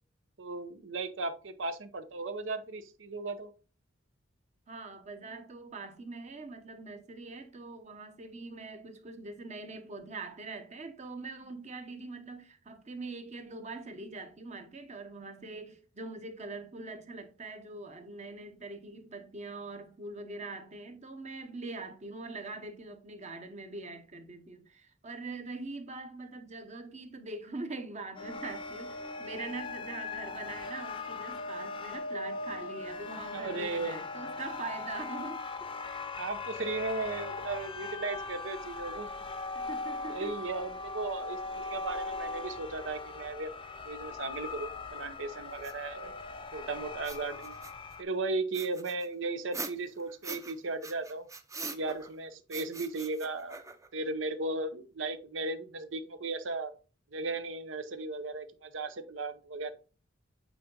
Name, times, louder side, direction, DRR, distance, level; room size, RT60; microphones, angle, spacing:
voice 1, 0.4-3.5 33.3-34.0 36.2-39.1 40.1-43.5 43.8-46.1 46.5-47.5 48.0-51.3 51.7-53.6 53.9-56.7 57.1-59.7, right 3 dB, 80° right, 0.8 m, -36 dB
voice 2, 4.7-35.5 35.8-36.0 39.5-40.4, right 3 dB, 40° right, 1.0 m, -43 dB
sound 1, 28.2-48.0, left 3 dB, 25° left, 0.6 m, -40 dB
sound 2, 45.6-45.7 46.9-47.9 48.5-50.5 50.8-52.2 52.5-54.0, right 3 dB, 15° right, 0.6 m, -43 dB
8.5 x 4.0 x 3.8 m
head